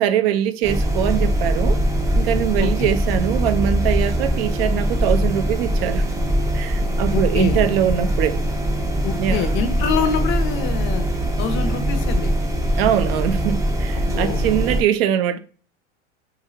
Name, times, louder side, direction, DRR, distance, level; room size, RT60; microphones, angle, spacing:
voice 1, 0.0-1.8 2.1-6.1 6.4-8.4 9.2-9.6 12.8-15.4, right 10 dB, 65° right, 0.4 m, -22 dB
sound 1, 0.6-14.8, equal, 10° right, 0.4 m, -22 dB
voice 2, 2.6-2.9 7.1-7.6 9.0-11.1 11.4-12.3 14.0-14.4, left 7 dB, 40° left, 0.5 m, -25 dB
3.0 x 2.3 x 2.7 m
hypercardioid pair, 105°, 33 cm